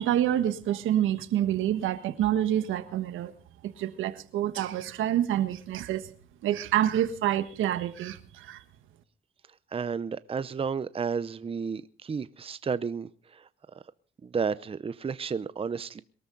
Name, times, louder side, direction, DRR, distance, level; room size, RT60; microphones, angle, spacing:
voice 1, 0.0-3.3 3.6-6.1 6.4-8.6, right 11 dB, 85° right, 1.4 m, -27 dB
voice 2, 9.7-13.5 13.7-13.8 14.2-16.0, right 6 dB, 30° right, 0.7 m, -32 dB
22.5 x 13.5 x 3.9 m
cardioid pair, 90°, 20 cm